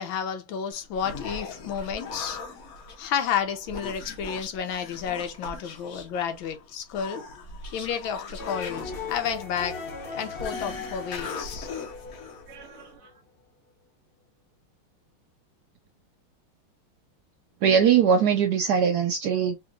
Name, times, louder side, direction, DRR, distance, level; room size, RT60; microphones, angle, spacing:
voice 1, 0.0-2.4 3.0-7.2 7.7-9.8 10.1-11.7, left 8 dB, 70° left, 1.4 m, -31 dB
Human voice, 0.7-13.0, left 4 dB, 55° left, 1.1 m, -40 dB
sound 1, 8.4-13.1, left 5 dB, 90° left, 0.5 m, -38 dB
voice 2, 12.5-12.9 17.6-19.5, right 7 dB, 80° right, 0.8 m, -21 dB
4.0 x 3.0 x 2.4 m
omnidirectional pair, 2.3 m